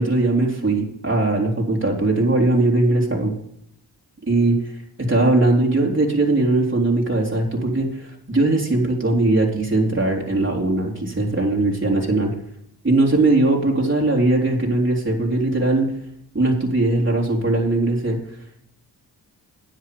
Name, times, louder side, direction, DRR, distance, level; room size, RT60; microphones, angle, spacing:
voice 1, 0.0-3.3 4.3-4.7 5.1-12.3 12.8-15.9 16.3-18.2, right 2 dB, 30° right, -1 dB, 3.5 m, -20 dB
10.5 x 7.4 x 6.9 m, 0.74 s
cardioid pair, 60°, 42 cm